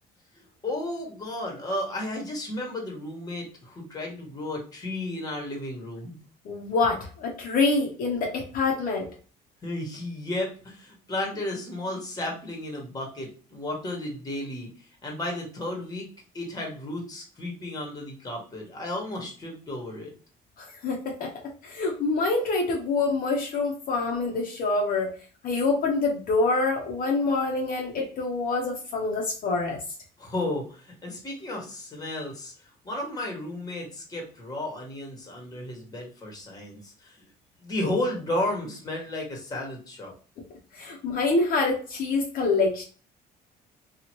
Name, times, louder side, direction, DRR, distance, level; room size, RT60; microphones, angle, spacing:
voice 1, 0.6-6.2 9.6-14.7 15.0-16.1 16.3-20.1 30.2-37.2 37.6-40.1, left 1 dB, 20° left, 0 dB, 1.2 m, -33 dB
voice 2, 6.4-9.1 20.6-21.3 21.6-25.1 25.4-29.8 40.7-42.8, left 3 dB, 55° left, -1 dB, 0.8 m, -26 dB
2.9 x 2.3 x 2.9 m, 0.39 s
cardioid pair, 110°, 17 cm